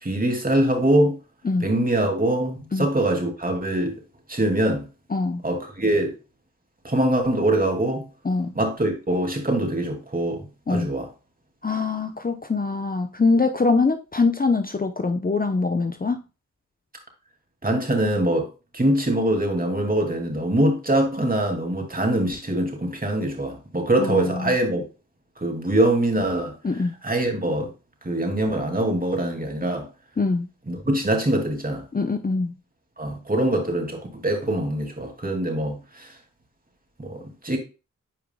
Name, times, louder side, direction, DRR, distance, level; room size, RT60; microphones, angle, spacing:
voice 1, 0.0-1.2 1.6-3.9 4.3-4.8 5.4-6.1 6.8-8.1 8.5-11.1 17.6-18.5 18.7-24.8 25.4-26.5 27.0-27.7 28.0-29.9 30.7-31.8 33.0-36.1 37.0-37.6, right 1 dB, 25° right, 2.5 m, -23 dB
voice 2, 5.1-5.4 8.2-8.5 10.7-10.9 11.6-16.2 24.0-24.5 26.6-26.9 30.2-30.5 31.9-32.5, left 3 dB, 30° left, 0.7 m, -23 dB
9.3 x 4.7 x 2.2 m
cardioid pair, 45°, 32 cm